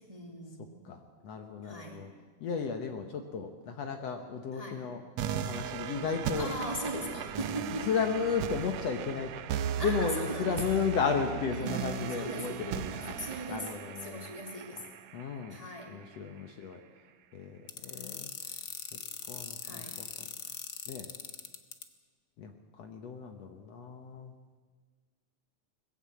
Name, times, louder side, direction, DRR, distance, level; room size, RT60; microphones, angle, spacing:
voice 1, 0.0-0.8 1.6-2.0 4.5-4.8 6.4-7.9 9.8-10.7 11.2-13.7 14.0-14.8 15.5-15.9 19.6-19.9, equal, 15° right, 0 dB, 2.1 m, -39 dB
voice 2, 0.8-2.1 2.4-5.0 5.3-6.5 7.9-9.4 9.8-13.1 13.5-14.3 15.1-15.6 15.9-16.8 17.3-18.6 18.9-19.0 19.3-20.3 20.9-21.1 22.4-24.3, left 6 dB, 65° left, 5 dB, 2.1 m, -34 dB
sound 1, 5.2-16.2, right 9 dB, 70° right, 1.8 m, -37 dB
sound 2, 17.7-21.8, left 7 dB, 90° left, 0.8 m, -40 dB
20.5 x 15.5 x 8.4 m, 1.5 s
omnidirectional pair, 3.5 m